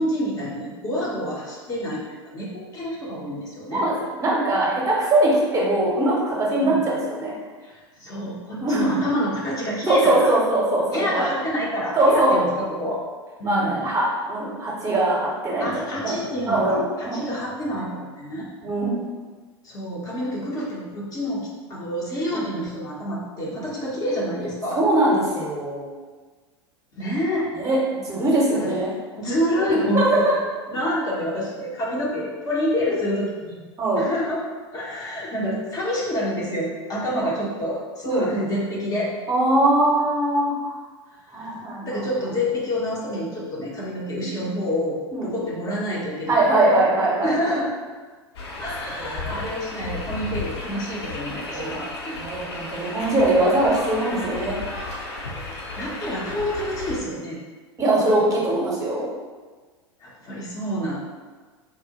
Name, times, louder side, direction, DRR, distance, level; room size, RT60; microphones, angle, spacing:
voice 1, 0.0-3.9 6.6-6.8 7.6-10.4 10.9-13.0 13.4-13.9 15.6-18.5 19.6-24.9 26.9-27.5 28.5-28.8 29.1-30.4 30.7-33.6 34.0-34.4 34.7-39.1 41.1-46.8 47.2-47.7 48.6-52.2 55.8-57.4 60.0-61.0, equal, 25° left, -5 dB, 0.6 m, -28 dB
voice 2, 4.2-7.3 8.6-8.9 9.9-11.4 12.0-12.4 13.4-16.2 16.5-17.3 18.6-19.1 22.3-22.4 23.4-23.5 24.8-25.9 27.6-28.9 29.7-30.4 33.8-34.1 37.2-37.3 38.1-38.3 39.3-40.7 41.3-42.0 44.2-44.4 45.1-45.3 46.3-47.6 49.0-49.4 51.5-51.8 52.2-54.6 57.8-59.1, right 1 dB, 25° right, -4 dB, 0.7 m, -21 dB
sound 1, 48.4-57.0, left 2 dB, 65° left, 0.6 m, -34 dB
3.6 x 2.0 x 2.8 m, 1.4 s
figure-of-eight pair, 85°, 15 cm